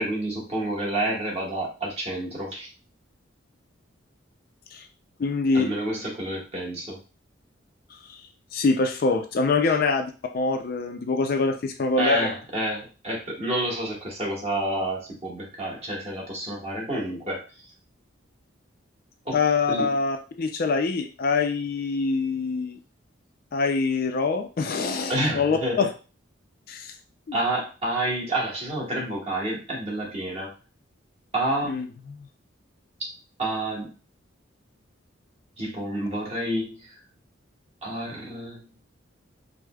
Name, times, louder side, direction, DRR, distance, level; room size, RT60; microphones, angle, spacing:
voice 1, 0.0-2.7 5.5-7.0 12.0-17.4 19.2-19.4 19.7-19.9 25.1-25.9 27.3-30.5 31.3-31.8 33.4-33.9 35.6-37.0 37.8-38.6, right 1 dB, 30° right, -3 dB, 1.1 m, -29 dB
voice 2, 5.2-5.7 8.1-8.2 8.5-12.3 19.3-22.8 23.5-25.9 26.7-26.9 27.3-27.4 31.6-32.3, left 4 dB, 50° left, 5 dB, 0.3 m, -25 dB
4.7 x 2.0 x 2.2 m, 0.33 s
head